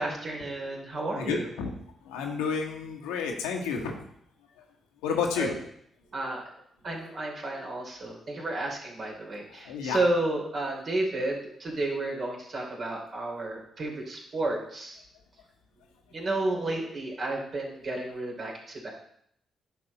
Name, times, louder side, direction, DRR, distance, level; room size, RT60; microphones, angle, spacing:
voice 1, 0.0-1.5 5.3-5.5 6.1-6.4 6.8-15.0 16.1-18.9, right 2 dB, 55° right, -1 dB, 3.0 m, -31 dB
voice 2, 1.2-1.7 2.1-4.0 5.0-5.5 9.6-10.0, left 6 dB, 80° left, 1 dB, 1.2 m, -30 dB
10.0 x 5.5 x 4.0 m, 0.68 s
hypercardioid pair, 40°, 0 cm